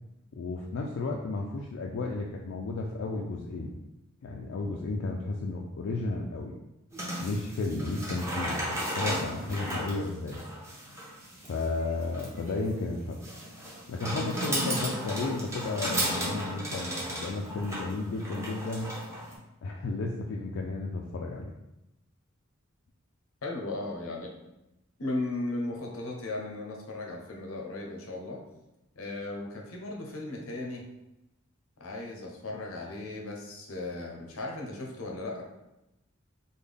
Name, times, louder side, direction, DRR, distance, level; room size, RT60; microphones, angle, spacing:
voice 1, 0.3-3.7 4.2-6.6 7.2-10.5 11.5-13.2 13.9-18.9 19.6-21.5, left 3 dB, 70° left, 0 dB, 0.3 m, -33 dB
sound 1, 6.9-19.3, equal, 15° right, 0.7 m, -34 dB
voice 2, 23.4-24.3 25.0-28.4 29.0-30.8 31.8-35.4, left 2 dB, 85° left, 0 dB, 0.7 m, -36 dB
3.6 x 2.1 x 3.4 m, 0.92 s
head